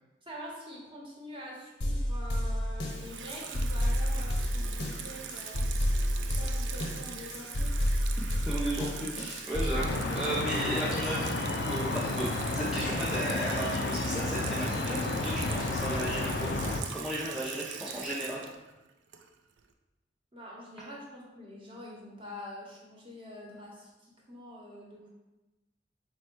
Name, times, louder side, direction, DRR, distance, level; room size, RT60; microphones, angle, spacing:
voice 1, 0.3-5.7 6.4-7.7 20.3-25.1, equal, 30° right, -3 dB, 0.9 m, -45 dB
sound 1, 1.8-9.8, equal, 90° left, 0.8 m, -30 dB
Water tap faucet / Sink (filling or washing), 2.9-19.6, right 7 dB, 85° right, 0.4 m, -42 dB
voice 2, 8.2-18.5, right 1 dB, 5° right, -8 dB, 0.4 m, -35 dB
sound 2, 9.7-16.8, left 2 dB, 65° left, 0.4 m, -32 dB
4.2 x 2.1 x 4.5 m, 1.1 s
head